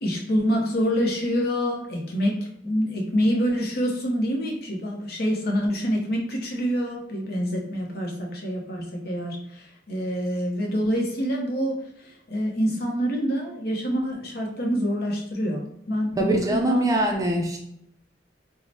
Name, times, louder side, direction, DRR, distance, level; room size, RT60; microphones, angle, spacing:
voice 1, 0.0-2.4 2.6-16.8, equal, 55° left, 0 dB, 0.7 m, -26 dB
voice 2, 16.2-17.6, right 1 dB, 20° right, 2 dB, 0.3 m, -22 dB
4.6 x 2.1 x 2.6 m, 0.76 s
head